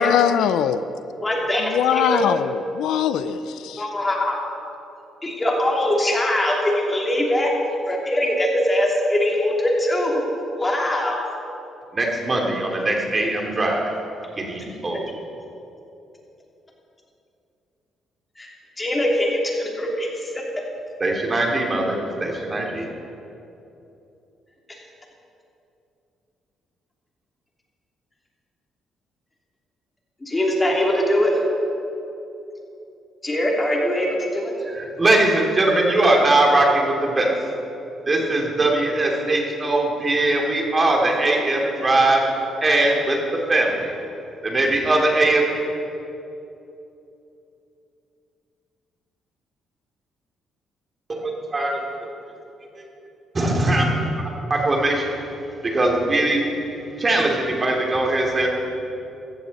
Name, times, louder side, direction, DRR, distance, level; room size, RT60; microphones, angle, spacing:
voice 1, 0.0-0.8 1.6-3.9, left 9 dB, 85° left, 0.4 m, -22 dB
voice 2, 1.2-2.2 3.8-4.4 5.2-7.5 7.9-10.2 10.6-11.2 18.4-18.5 18.8-20.3 30.2-31.3 33.2-34.5, left 1 dB, 20° left, 2.9 m, -22 dB
voice 3, 11.9-13.9 14.4-15.2 21.0-22.9 34.7-37.3 38.1-42.2 42.6-43.2 43.5-43.9 44.4-45.5 51.1-52.1 52.7-52.8 53.3-54.1 54.5-55.2 55.6-56.5 57.0-58.5, right 2 dB, 30° right, 2.7 m, -21 dB
15.0 x 14.0 x 4.2 m
cardioid pair, 90°, 0 cm